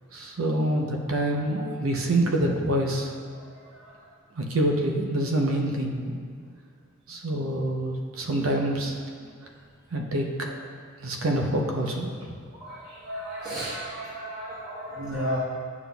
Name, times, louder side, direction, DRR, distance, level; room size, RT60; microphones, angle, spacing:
voice 1, 0.1-3.1 4.4-6.1 7.1-9.0 9.9-10.5 11.0-12.4, right 1 dB, 75° right, 1 dB, 0.8 m, -26 dB
voice 2, 12.6-15.4, right 1 dB, 55° right, -8 dB, 1.0 m, -34 dB
9.2 x 5.9 x 2.3 m, 2.1 s
head